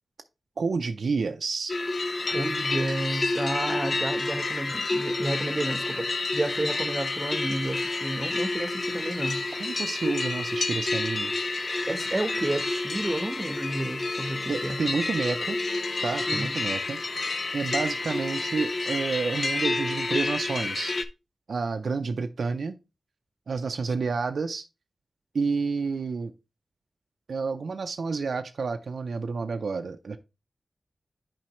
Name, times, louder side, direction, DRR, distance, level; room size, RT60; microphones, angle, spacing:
voice 1, 0.6-1.7 9.6-11.3 14.5-15.6 16.0-17.0 17.5-21.0 21.5-22.8 23.5-24.6 25.3-26.3 27.3-30.2, right 4 dB, 80° right, 0.5 m, -29 dB
sound 1, 1.7-21.1, left 3 dB, 55° left, 0.6 m, -29 dB
voice 2, 2.3-9.4 11.9-14.8 16.3-16.8, right 1 dB, 30° right, 0.9 m, -31 dB
7.5 x 4.7 x 3.0 m
cardioid pair, 65°, 0 cm